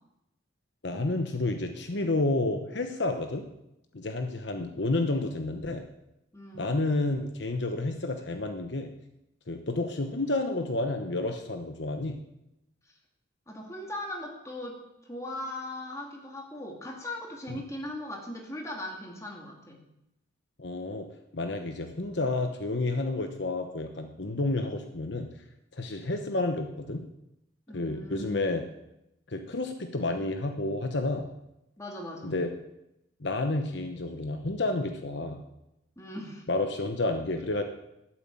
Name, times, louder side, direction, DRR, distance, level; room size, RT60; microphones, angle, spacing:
voice 1, 0.8-3.5 3.9-5.8 6.5-8.9 9.5-12.2 17.5-17.6 20.6-21.1 21.3-25.3 25.7-27.0 27.7-28.6 29.3-31.3 32.2-32.5 33.2-35.4 36.5-37.6, left 2 dB, 60° left, 6 dB, 1.0 m, -30 dB
voice 2, 6.3-6.8 13.5-14.8 15.1-19.8 27.7-28.6 31.8-32.4 36.0-36.5, left 1 dB, 15° left, 0 dB, 2.4 m, -39 dB
13.0 x 7.2 x 8.9 m, 0.88 s
head